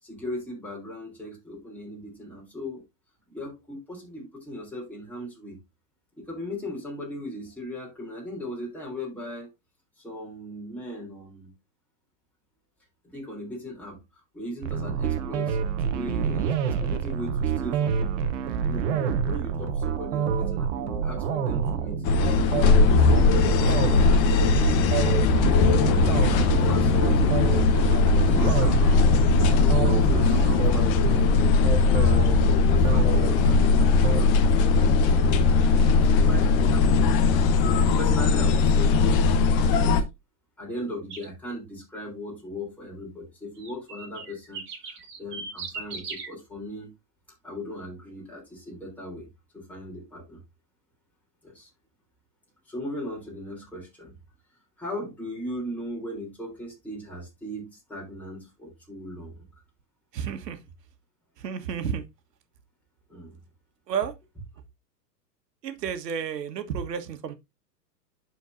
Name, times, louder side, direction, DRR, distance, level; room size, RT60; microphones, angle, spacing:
voice 1, 0.0-2.8 3.3-5.6 6.2-9.5 10.0-11.5 13.1-18.3 18.6-22.0 22.5-24.9 26.5-27.4 28.0-39.0 39.7-40.0 40.6-46.9 47.4-49.3 49.5-50.4 51.4-51.7 52.6-54.1 54.8-59.4 63.1-63.4, left 1 dB, 5° left, 3.5 m, -38 dB
sound 1, 14.6-34.3, right 7 dB, 50° right, 1.0 m, -28 dB
sound 2, 22.0-40.0, left 4 dB, 35° left, 1.0 m, -20 dB
sound 3, 41.1-41.3 43.5-46.3, right 4 dB, 25° right, 2.6 m, -38 dB
voice 2, 60.1-60.6 61.4-62.0 63.9-64.1 65.6-67.3, right 7 dB, 75° right, 1.5 m, -31 dB
11.5 x 4.5 x 2.6 m
hypercardioid pair, 135°, 49 cm